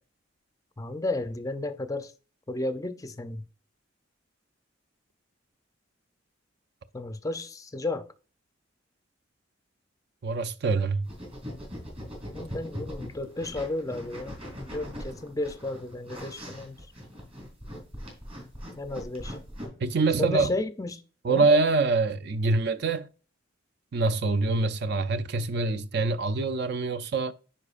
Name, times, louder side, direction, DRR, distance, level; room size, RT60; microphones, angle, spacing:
voice 1, 0.8-2.1 2.5-3.4 6.9-8.1 12.3-16.8 18.8-19.4 20.2-21.0 21.3-21.5, left 2 dB, 15° left, 0.5 m, -33 dB
voice 2, 10.2-11.1 19.8-20.5 21.2-23.1 23.9-27.3, right 3 dB, 55° right, 0.4 m, -25 dB
sound 1, 11.0-19.7, equal, 30° right, 3.3 m, -40 dB
9.8 x 4.3 x 2.4 m
head